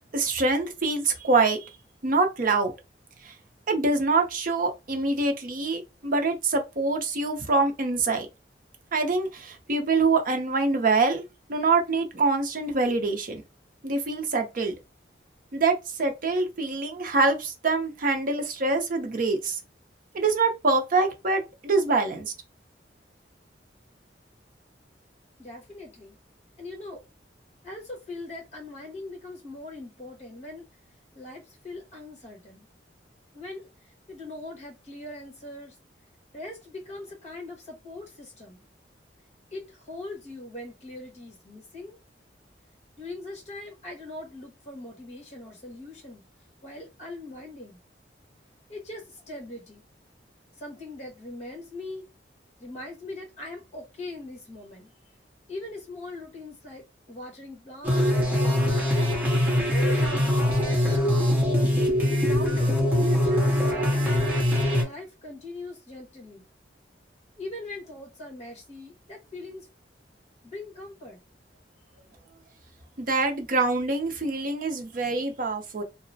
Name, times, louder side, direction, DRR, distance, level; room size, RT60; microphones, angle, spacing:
voice 1, 0.1-1.7 2.0-2.7 3.2-3.3 3.7-8.3 8.9-11.2 11.5-13.4 13.8-14.7 15.5-19.6 20.1-22.3 73.0-75.8, right 3 dB, 50° right, 0.6 m, -25 dB
voice 2, 25.4-26.2 26.6-27.0 27.6-30.7 31.1-32.7 33.3-33.7 34.1-35.7 36.3-38.6 39.5-42.0 43.0-46.2 46.6-47.8 48.7-49.8 50.6-52.0 52.6-54.9 55.5-59.1 59.6-60.6 62.0-64.4 64.8-66.5 67.4-69.7 70.4-71.2, left 2 dB, 40° left, 1.4 m, -41 dB
sound 1, 57.8-64.8, left 1 dB, 10° right, 0.8 m, -22 dB
2.9 x 2.0 x 2.7 m
head